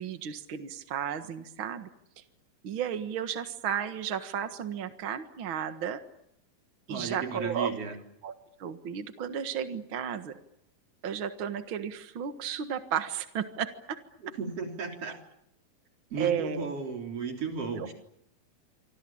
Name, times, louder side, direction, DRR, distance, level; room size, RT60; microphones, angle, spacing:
voice 1, 0.0-1.9 2.2-2.3 2.6-6.0 6.9-7.7 8.2-8.3 8.6-10.4 11.0-14.0 16.2-16.7 17.8-17.9, right 8 dB, 60° right, 8 dB, 1.3 m, -33 dB
voice 2, 6.9-7.9 14.4-15.2 16.1-17.9, right 5 dB, 40° right, 3 dB, 4.3 m, -34 dB
27.0 x 24.5 x 8.7 m, 0.77 s
omnidirectional pair, 4.5 m